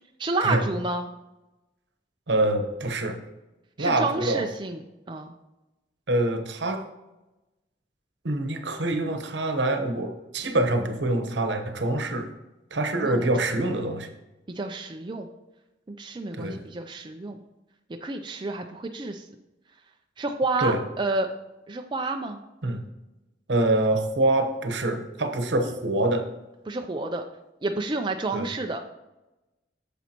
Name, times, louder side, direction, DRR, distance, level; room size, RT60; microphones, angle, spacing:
voice 1, 0.2-1.1 3.8-4.8 5.1-5.3 13.0-13.3 14.6-15.3 15.9-17.4 18.0-19.2 20.2-21.3 21.7-22.4 26.7-27.2 27.6-28.8, right 3 dB, 25° right, 4 dB, 0.4 m, -29 dB
voice 2, 2.3-3.2 3.8-4.4 6.1-6.8 8.2-12.3 12.7-14.1 16.3-16.6 20.6-20.8 22.6-22.8 23.5-26.2 28.3-28.5, right 2 dB, 70° right, 6 dB, 1.0 m, -25 dB
9.3 x 7.1 x 2.9 m, 1.0 s
head